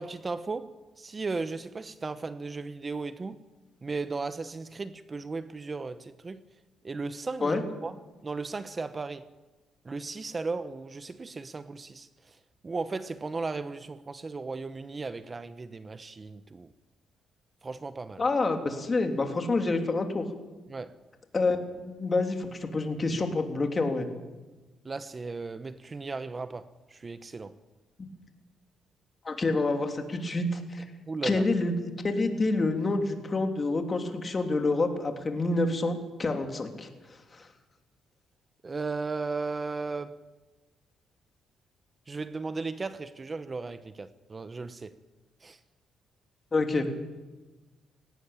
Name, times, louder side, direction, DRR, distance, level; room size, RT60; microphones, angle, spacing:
voice 1, 0.0-3.4 3.8-6.4 6.8-8.0 8.2-9.3 9.8-12.4 12.6-16.7 17.6-18.2 20.7-20.9 24.8-27.5 31.1-31.5 38.6-40.2 42.1-44.9 45.4-45.6, right 3 dB, 30° right, 1.0 m, -36 dB
voice 2, 18.2-20.2 21.3-21.6 21.8-24.1 29.2-30.8 31.2-31.7 32.0-36.9 37.3-37.5 46.5-46.9, left 3 dB, 30° left, 3.3 m, -27 dB
18.0 x 18.0 x 8.8 m
cardioid pair, 90°, 0 cm